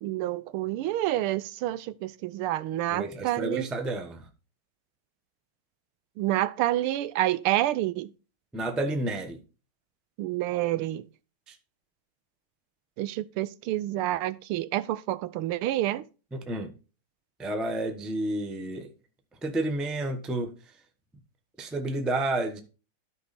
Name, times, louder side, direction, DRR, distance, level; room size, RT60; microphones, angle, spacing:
voice 1, 0.0-3.7 6.2-8.1 10.2-11.0 13.0-16.0, right 14 dB, 85° right, 1.5 m, -28 dB
voice 2, 2.9-4.2 8.5-9.4 11.5-11.6 16.3-16.7 17.4-18.9 19.4-20.5 21.6-22.6, right 2 dB, ahead, 0.4 m, -30 dB
12.5 x 5.2 x 4.1 m
omnidirectional pair, 2.4 m